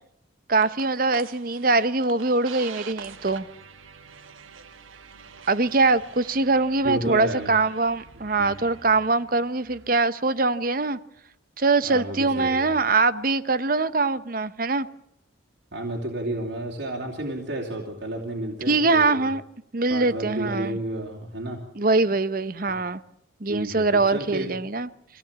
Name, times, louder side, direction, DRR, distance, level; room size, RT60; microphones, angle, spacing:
voice 1, 0.5-3.4 5.5-11.0 11.6-14.9 18.7-19.4 19.7-20.8 21.8-23.0 23.4-24.9, right 3 dB, 45° right, 14 dB, 0.8 m, -23 dB
sound 1, 0.6-9.9, right 5 dB, 85° right, 1.5 m, -46 dB
voice 2, 6.8-7.5 8.4-8.5 11.8-12.8 15.7-19.3 19.9-21.6 23.4-24.5, right 1 dB, 65° right, -2 dB, 3.0 m, -31 dB
24.5 x 17.0 x 8.7 m, 0.75 s
head